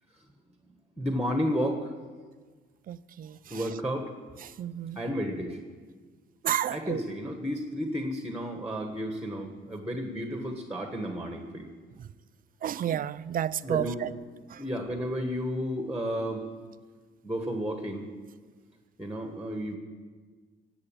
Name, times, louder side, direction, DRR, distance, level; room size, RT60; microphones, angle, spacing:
voice 1, 1.0-1.9 3.5-4.1 4.9-5.6 6.7-11.7 13.6-14.1 14.6-16.4 17.2-18.0 19.0-19.8, equal, 5° right, 4 dB, 1.4 m, -32 dB
voice 2, 2.9-3.6 4.6-5.0 6.4-7.0 12.6-14.1 14.5-14.6, right 10 dB, 45° right, 16 dB, 0.5 m, -31 dB
16.5 x 7.9 x 8.9 m, 1.5 s
cardioid pair, 130°, 21 cm